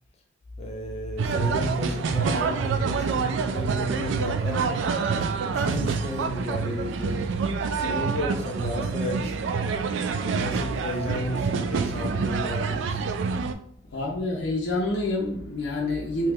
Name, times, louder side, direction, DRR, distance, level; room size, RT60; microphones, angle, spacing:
voice 1, 0.6-5.0 5.3-7.5 7.8-9.6 10.1-13.0, left 1 dB, 35° left, 0.4 m, -33 dB
sound 1, 1.2-13.5, right 5 dB, 90° right, 0.3 m, -27 dB
voice 2, 13.9-16.3, left 2 dB, 75° left, 0.6 m, -27 dB
2.9 x 2.2 x 3.4 m
head